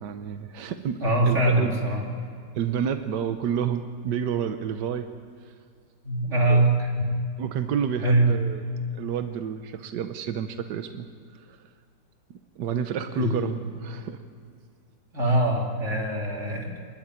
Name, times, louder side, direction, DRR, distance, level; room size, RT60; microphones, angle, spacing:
voice 1, 0.0-1.8 2.6-5.1 6.5-6.6 7.4-8.6 8.9-11.1 11.3-11.4 12.6-13.5 13.8-14.2 15.3-15.4, right 8 dB, 75° right, 8 dB, 1.5 m, -29 dB
voice 2, 1.0-2.1 6.0-7.1 8.0-8.4 13.1-13.5 15.1-16.8, right 2 dB, 40° right, -2 dB, 3.7 m, -23 dB
24.0 x 11.5 x 10.0 m, 2.2 s
omnidirectional pair, 1.9 m